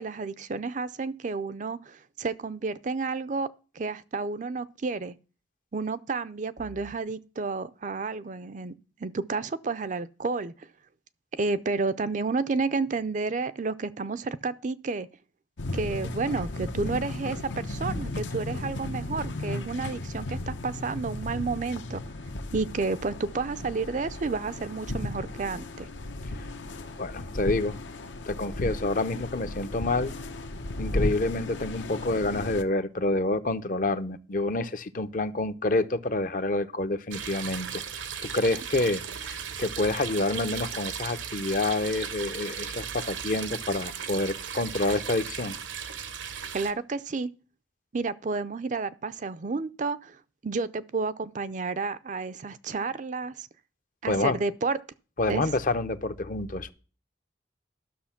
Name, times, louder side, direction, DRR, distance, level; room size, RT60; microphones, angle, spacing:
voice 1, 0.0-3.5 3.8-5.1 5.7-8.7 9.0-10.7 11.3-15.1 15.7-22.0 22.5-25.9 46.5-47.3 47.9-50.2 50.4-53.5 54.0-54.8 55.3-55.4, right 4 dB, 40° right, 0.5 m, -31 dB
sound 1, 15.6-32.6, left 2 dB, 80° left, 1.0 m, -35 dB
voice 2, 27.0-27.8 28.3-30.1 30.8-37.8 38.3-45.6 54.1-54.4 55.2-56.7, left 2 dB, 45° left, 0.7 m, -28 dB
sound 2, 37.1-46.7, right 7 dB, 80° right, 0.9 m, -36 dB
12.0 x 6.4 x 5.8 m
head